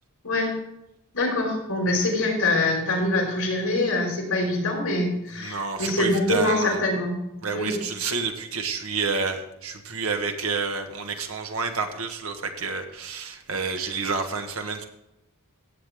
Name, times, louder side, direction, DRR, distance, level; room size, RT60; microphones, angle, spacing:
voice 1, 1.1-7.2 7.5-7.7, left 2 dB, 75° left, -1 dB, 4.7 m, -24 dB
voice 2, 5.4-6.8 7.4-14.8, right 4 dB, 65° right, 4 dB, 1.5 m, -29 dB
16.0 x 8.2 x 3.6 m, 0.89 s
head